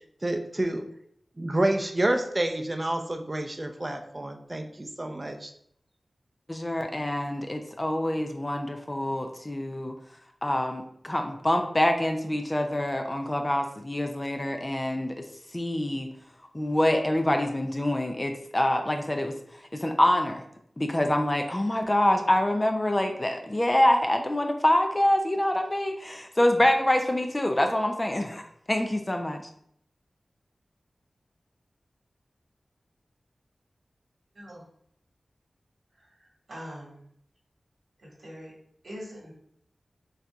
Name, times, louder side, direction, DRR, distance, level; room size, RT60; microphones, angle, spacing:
voice 1, 0.2-0.9 1.4-5.5, right 1 dB, 30° right, 5 dB, 0.5 m, -28 dB
voice 2, 6.5-9.9 10.4-15.1 15.5-16.1 16.5-19.3 19.7-20.4 20.8-28.4 28.7-29.4, left 1 dB, 25° left, 5 dB, 0.4 m, -25 dB
voice 3, 36.0-37.1 38.0-38.5 38.8-39.3, equal, 80° right, -4 dB, 1.6 m, -43 dB
6.2 x 2.7 x 2.3 m, 0.69 s
wide cardioid pair, 75°, 0 cm